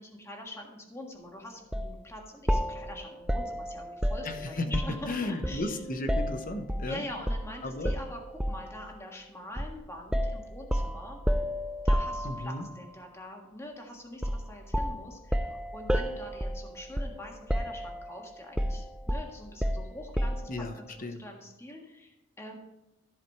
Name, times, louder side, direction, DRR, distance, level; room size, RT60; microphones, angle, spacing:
voice 1, 0.0-5.8 6.9-11.2 11.8-22.6, left 1 dB, 15° left, 1 dB, 1.5 m, -44 dB
sound 1, 1.7-1.9 2.5-5.1 5.4-6.9 7.3-7.5 7.8-8.7 9.6-9.8 10.1-12.7 14.2-14.5 14.7-17.2 17.5-18.1 18.6-20.5, equal, 5° right, 0.4 m, -30 dB
voice 2, 4.2-4.7 5.1-7.0 7.6-7.9 12.2-12.7 20.5-21.2, left 2 dB, 40° left, 7 dB, 0.9 m, -35 dB
14.0 x 5.0 x 4.6 m, 0.95 s
head